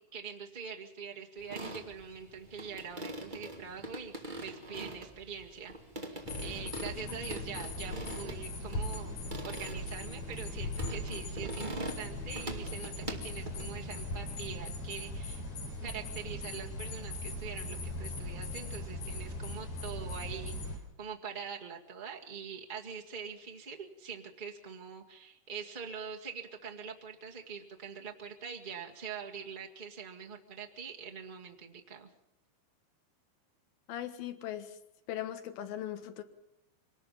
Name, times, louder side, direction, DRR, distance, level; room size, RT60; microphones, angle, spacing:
voice 1, 0.1-4.1 4.4-5.7 6.1-9.1 9.4-15.4 15.8-32.1, right 6 dB, 65° right, 0.5 m, -44 dB
sound 1, 1.4-14.6, right 1 dB, 15° right, 1.6 m, -44 dB
sound 2, 6.2-20.8, left 2 dB, 50° left, 4.8 m, -39 dB
sound 3, 6.9-12.8, right 6 dB, 35° right, 7.4 m, -58 dB
voice 2, 33.9-34.8 35.1-36.2, left 11 dB, 70° left, 3.2 m, -39 dB
25.0 x 19.5 x 5.7 m
omnidirectional pair, 4.5 m